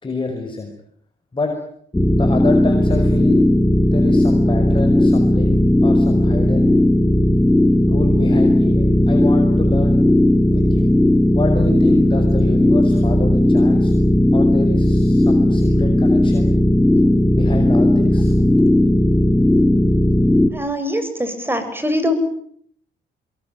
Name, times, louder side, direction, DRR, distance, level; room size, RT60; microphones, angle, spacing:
voice 1, 0.0-0.7 1.3-1.5 2.1-3.4 3.9-6.8 7.9-10.0 10.5-10.9 11.3-13.9 14.3-16.5 17.3-18.3, left 3 dB, 25° left, 4 dB, 5.3 m, -27 dB
sound 1, 1.9-20.5, left 1 dB, 10° left, 2.0 m, -15 dB
voice 2, 20.5-22.1, left 1 dB, 10° right, 9 dB, 7.7 m, -22 dB
25.0 x 22.0 x 9.4 m, 0.65 s
cardioid pair, 90°, 20 cm